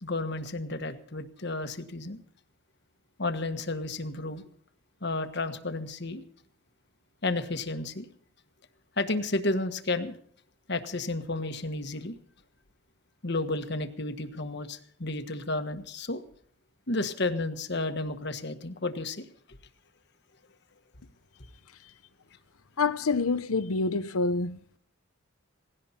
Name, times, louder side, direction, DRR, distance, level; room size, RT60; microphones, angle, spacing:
voice 1, 0.0-2.2 3.2-4.5 5.0-6.2 7.2-8.1 9.0-10.1 10.7-12.1 13.2-16.2 16.9-19.3, left 2 dB, 50° left, 1.4 m, -32 dB
voice 2, 22.8-24.6, left 3 dB, 85° left, 0.9 m, -27 dB
18.0 x 16.5 x 4.4 m
head